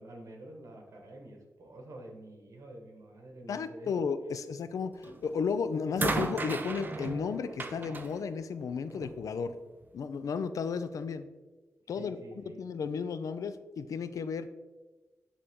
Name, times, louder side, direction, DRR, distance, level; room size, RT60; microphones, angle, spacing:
voice 1, 0.0-3.9 12.0-12.6, right 1 dB, 70° right, 2 dB, 1.3 m, -48 dB
voice 2, 3.5-9.6 9.9-11.3 11.9-12.2 12.5-14.5, left 5 dB, 90° left, 12 dB, 0.4 m, -33 dB
sound 1, 5.0-5.4 6.0-9.2 10.3-10.4, right 3 dB, 35° right, 0.5 m, -36 dB
9.0 x 3.3 x 3.6 m, 1.2 s
wide cardioid pair, 135°, 6 cm